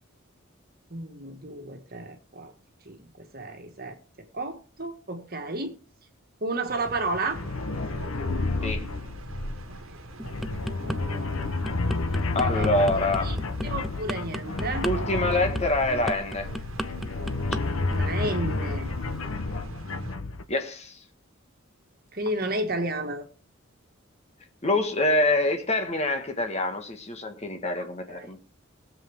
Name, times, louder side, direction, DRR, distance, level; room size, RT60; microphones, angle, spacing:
voice 1, 0.9-2.5 2.9-4.0 4.3-5.8 6.4-7.4 9.7-9.8 10.8-11.0 12.4-13.4 13.6-14.9 17.9-18.9 22.1-23.3 27.8-28.3, right 2 dB, 45° right, 1.9 m, -32 dB
sound 1, 6.7-20.2, right 2 dB, 80° right, 1.4 m, -44 dB
sound 2, 7.3-20.4, left 2 dB, 90° left, 1.0 m, -30 dB
sound 3, 10.2-11.0 11.4-17.6 17.9-18.2, equal, ahead, 0.5 m, -33 dB
voice 2, 12.3-13.4 14.8-16.5 20.5-21.0 24.6-28.4, left 2 dB, 30° left, 1.6 m, -26 dB
20.0 x 7.6 x 3.6 m
head